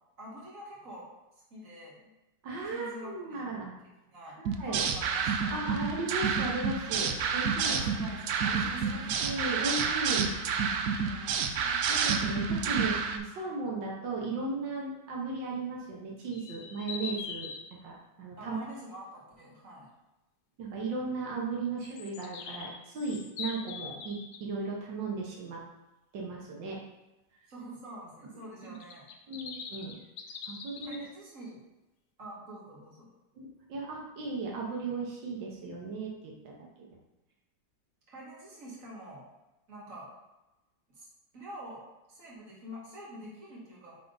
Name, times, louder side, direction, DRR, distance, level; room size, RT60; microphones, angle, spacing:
voice 1, 0.2-1.1 1.5-2.1 2.7-3.5 4.1-4.4 4.6-5.6 7.6-9.6 11.0-11.4 18.4-19.9 27.5-29.0 30.8-31.6 32.2-33.1 38.1-39.2 39.7-40.1 40.9-41.1 41.3-44.0, equal, 45° right, -6 dB, 2.3 m, -46 dB
voice 2, 2.4-3.7 4.4-4.8 5.5-7.8 8.8-10.3 11.6-17.5 17.8-18.6 20.6-25.6 26.1-26.8 29.3-30.0 30.5-31.0 33.4-37.0, right 3 dB, 90° right, -2 dB, 1.9 m, -36 dB
sound 1, 4.5-13.2, right 6 dB, 70° right, 1.0 m, -29 dB
sound 2, 16.3-17.7 21.8-24.4 28.8-31.0, left 6 dB, 65° left, 1.2 m, -42 dB
9.3 x 3.5 x 4.0 m, 1.0 s
omnidirectional pair, 1.9 m